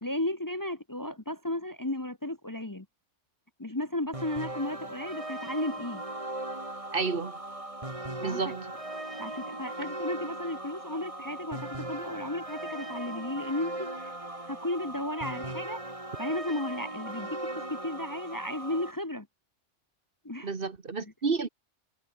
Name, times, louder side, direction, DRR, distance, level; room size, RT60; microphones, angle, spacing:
voice 1, 0.0-2.9 3.6-6.0 8.2-8.5 9.2-14.1 14.5-15.8 16.2-19.3 20.2-20.5, left 1 dB, 20° left, 1.1 m, -34 dB
sound 1, 4.1-18.9, right 1 dB, 30° right, 3.3 m, -38 dB
voice 2, 6.9-7.4 8.2-8.7 20.4-21.5, right 4 dB, 50° right, 1.6 m, -31 dB
omnidirectional pair, 1.2 m